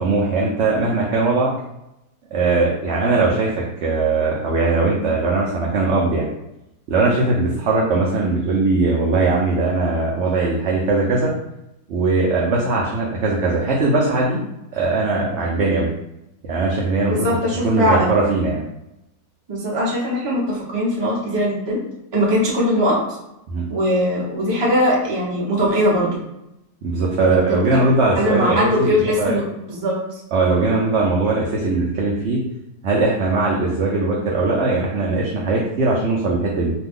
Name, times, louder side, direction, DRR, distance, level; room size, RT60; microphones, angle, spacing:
voice 1, 0.0-1.5 2.3-6.3 6.9-11.3 11.9-14.4 14.7-15.9 16.5-17.3 17.6-18.6 23.5-23.7 26.8-29.3 30.3-32.4 32.8-36.7, right 3 dB, 70° right, -3 dB, 0.6 m, -20 dB
voice 2, 17.1-18.1 19.5-21.8 22.1-23.0 23.7-26.2 27.2-27.6 28.2-29.4 29.7-30.2, equal, 25° right, -6 dB, 0.5 m, -20 dB
2.5 x 2.2 x 3.5 m, 0.87 s
omnidirectional pair, 1.6 m